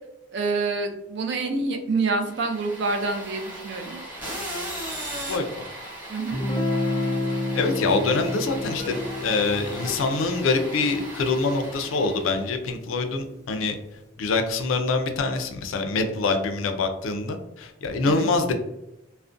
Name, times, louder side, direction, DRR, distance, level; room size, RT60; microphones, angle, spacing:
voice 1, 0.3-4.0 6.1-6.4 18.0-18.3, right 3 dB, 60° right, 5 dB, 0.4 m, -27 dB
sound 1, 2.3-12.5, equal, 10° right, 0.9 m, -37 dB
voice 2, 5.3-5.6 7.5-9.0 9.2-13.8 14.2-18.5, left 3 dB, 85° left, 6 dB, 0.4 m, -25 dB
Guitar, 6.3-12.1, left 1 dB, 15° left, 0.3 m, -30 dB
2.4 x 2.1 x 2.5 m, 0.90 s
head